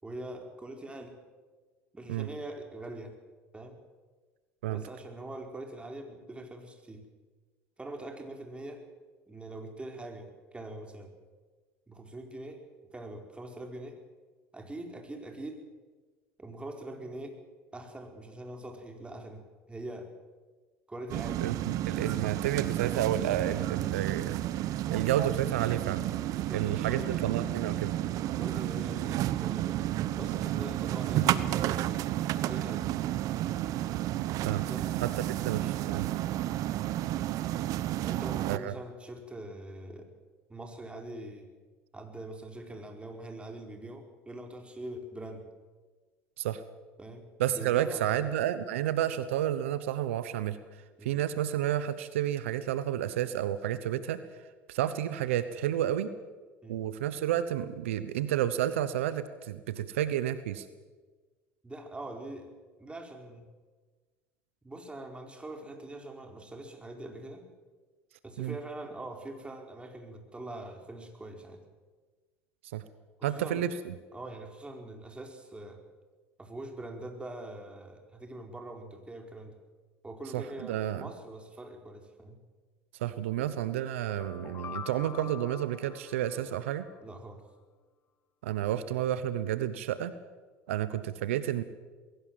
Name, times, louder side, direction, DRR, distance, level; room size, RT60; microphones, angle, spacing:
voice 1, 0.0-1.2 1.9-3.2 3.5-3.8 4.7-7.0 7.8-8.8 9.3-11.1 11.9-12.6 12.9-14.0 14.5-15.6 16.4-17.4 17.7-20.1 20.9-21.5 22.0-22.2 26.3-27.3 28.3-31.9 32.4-32.9 34.7-35.0 38.0-40.1 40.5-41.5 41.9-45.5 47.0-47.2 47.5-48.2 51.0-51.1 56.6-56.8 61.6-62.5 62.8-63.5 64.6-67.4 68.2-71.6 73.2-73.6 74.1-75.8 76.4-79.6 80.0-82.4 87.0-87.4, right 1 dB, 15° right, 3 dB, 4.8 m, -43 dB
sound 1, 21.1-38.6, right 13 dB, 60° right, 0.9 m, -31 dB
voice 2, 21.4-26.1 26.5-27.9 34.4-34.6 35.0-36.1 38.5-38.7 46.4-46.6 47.4-50.6 51.0-54.2 54.7-56.1 56.7-60.7 68.4-68.6 72.7-72.8 73.2-73.9 80.3-81.1 83.0-86.9 88.4-90.1 90.7-91.6, right 11 dB, 85° right, 13 dB, 1.0 m, -31 dB
sound 2, 83.9-87.0, left 8 dB, 40° left, 0.9 m, -45 dB
21.5 x 17.0 x 7.6 m, 1.4 s
hypercardioid pair, 75°, 7 cm